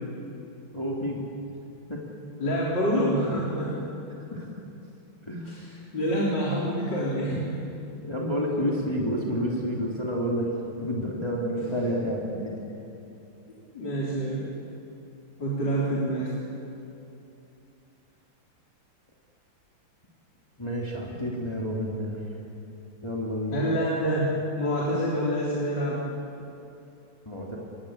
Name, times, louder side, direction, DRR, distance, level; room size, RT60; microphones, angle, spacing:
voice 1, 0.7-1.2 1.9-2.0 4.3-4.6 5.2-5.6 8.0-12.5 20.6-22.2 23.0-23.6 27.2-27.6, equal, 15° left, -3 dB, 2.9 m, -29 dB
voice 2, 2.4-3.8 5.5-7.6 13.7-14.5 15.4-16.3 23.5-26.0, equal, 60° left, -6 dB, 4.6 m, -27 dB
26.5 x 20.5 x 8.8 m, 2.8 s
omnidirectional pair, 2.2 m